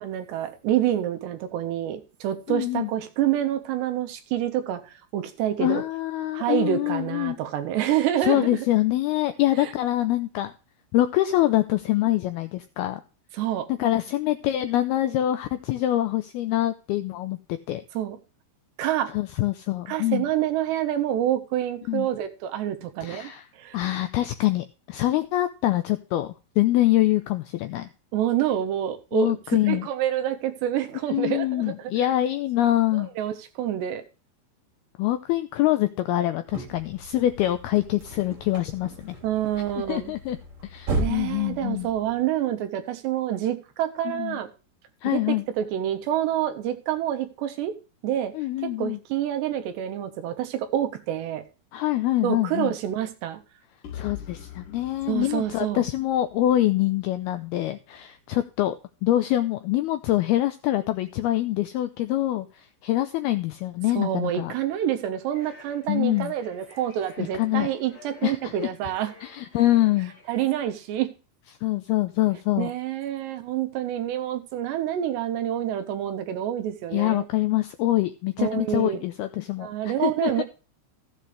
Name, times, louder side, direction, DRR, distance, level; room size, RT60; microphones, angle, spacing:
voice 1, 0.0-4.8 5.1-5.8 6.3-8.7 9.6-9.7 13.3-13.7 17.9-18.2 18.8-19.1 19.9-23.3 23.6-23.8 28.1-29.4 29.7-31.9 32.9-34.0 39.2-40.1 41.0-44.5 45.0-47.7 48.0-48.3 48.6-51.4 52.2-53.4 55.1-55.8 64.0-69.1 70.3-71.1 72.6-77.2 78.4-79.0 79.6-80.4, right 11 dB, 75° right, 3.2 m, -27 dB
voice 2, 2.5-2.9 5.6-7.4 8.2-10.5 10.9-13.0 13.8-17.8 19.1-20.3 21.9-22.1 23.0-23.5 23.7-27.9 29.1-29.9 31.1-33.1 35.0-39.2 39.9-40.4 40.6-41.9 44.1-44.4 45.0-45.4 48.3-49.0 51.7-52.7 53.9-58.8 59.0-64.5 65.9-66.3 67.2-67.7 68.2-68.9 69.2-70.1 71.6-72.7 76.9-80.4, left 14 dB, 85° left, 2.2 m, -25 dB
sound 1, 36.5-42.3, right 2 dB, 40° right, 4.3 m, -35 dB
sound 2, 53.8-57.7, left 10 dB, 55° left, 3.0 m, -43 dB
sound 3, 65.3-70.9, left 3 dB, 30° left, 8.7 m, -51 dB
14.5 x 8.1 x 3.3 m
omnidirectional pair, 5.2 m